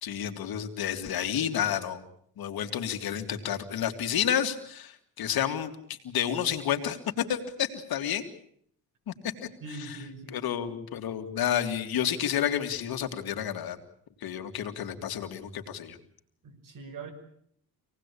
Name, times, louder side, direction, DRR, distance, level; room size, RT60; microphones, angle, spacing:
voice 1, 0.0-2.0 2.4-8.3 9.1-9.2 10.3-13.8 14.2-16.0, left 9 dB, 75° left, 6 dB, 2.4 m, -30 dB
voice 2, 9.6-10.4 16.4-17.1, right 3 dB, 60° right, 5 dB, 5.8 m, -42 dB
26.5 x 18.5 x 8.4 m, 0.65 s
cardioid pair, 100°, 36 cm